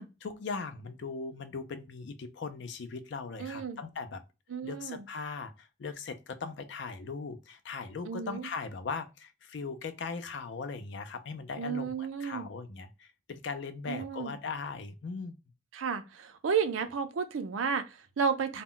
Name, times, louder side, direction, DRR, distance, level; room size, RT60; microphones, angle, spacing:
voice 1, 0.0-4.2 4.6-15.4, left 4 dB, 60° left, 0.4 m, -39 dB
voice 2, 3.4-3.8 4.5-5.0 8.0-8.5 11.6-12.5 13.9-14.4 15.7-18.6, right 6 dB, 80° right, 0.4 m, -32 dB
2.2 x 2.1 x 3.6 m
head